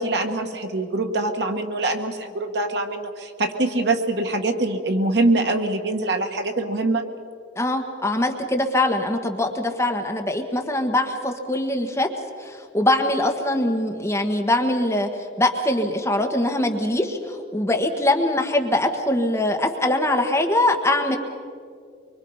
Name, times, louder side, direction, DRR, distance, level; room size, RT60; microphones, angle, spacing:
voice 1, 0.0-7.0, right 2 dB, 65° right, 5 dB, 1.6 m, -24 dB
voice 2, 7.6-12.1 12.4-15.1 15.4-21.2, left 1 dB, 15° left, 2 dB, 1.5 m, -22 dB
24.5 x 24.0 x 5.6 m, 2.3 s
head